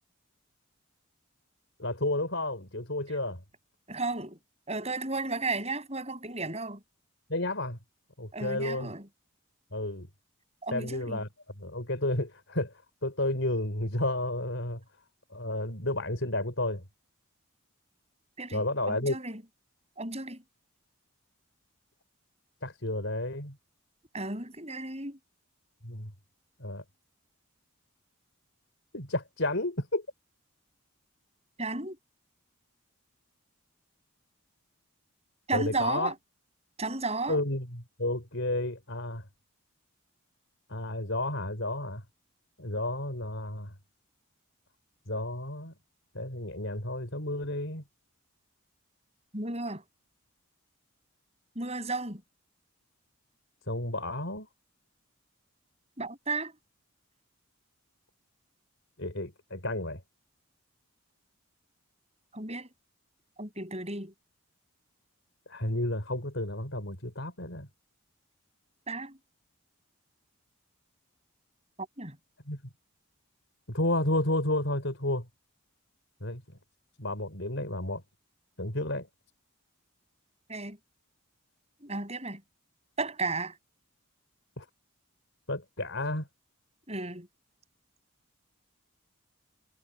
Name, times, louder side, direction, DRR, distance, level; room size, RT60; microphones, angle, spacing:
voice 1, 1.8-3.4 7.3-7.8 8.2-8.9 9.7-10.1 10.7-11.3 11.6-12.7 13.0-14.8 15.3-16.8 18.5-19.2 22.6-23.6 25.8-26.1 26.6-26.8 28.9-30.0 35.5-36.1 37.3-39.2 40.7-42.0 42.6-43.7 45.1-45.7 46.1-47.8 53.7-54.5 59.0-60.0 65.5-67.7 72.5-72.6 73.7-75.3 76.2-76.4 77.0-78.0 78.6-79.1 84.6-84.7 85.5-86.3, left 1 dB, 55° left, 5.6 m, -31 dB
voice 2, 3.9-4.4 4.7-6.8 8.3-9.1 10.6-11.2 18.4-19.4 20.0-20.4 24.1-25.2 31.6-32.0 35.5-36.1 36.8-37.4 49.3-49.8 51.5-52.2 56.0-56.5 62.3-62.7 63.4-64.1 68.9-69.2 71.8-72.2 80.5-80.8 81.8-82.4 83.0-83.5 86.9-87.3, right 3 dB, 30° right, 8.0 m, -34 dB
head